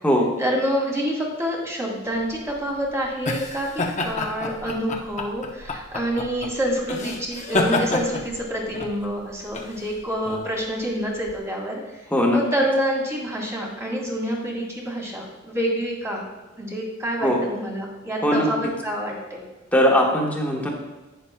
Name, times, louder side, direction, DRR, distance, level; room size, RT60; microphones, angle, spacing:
voice 1, 0.4-12.1 12.3-16.2 16.6-19.4, equal, 15° right, -2 dB, 2.0 m, -27 dB
sound 1, 2.2-11.4, left 2 dB, 35° left, 0.8 m, -29 dB
voice 2, 12.1-12.4 17.2-17.4 18.2-18.5 19.7-20.7, equal, 10° left, -1 dB, 1.3 m, -19 dB
11.0 x 8.9 x 2.2 m, 1.1 s
head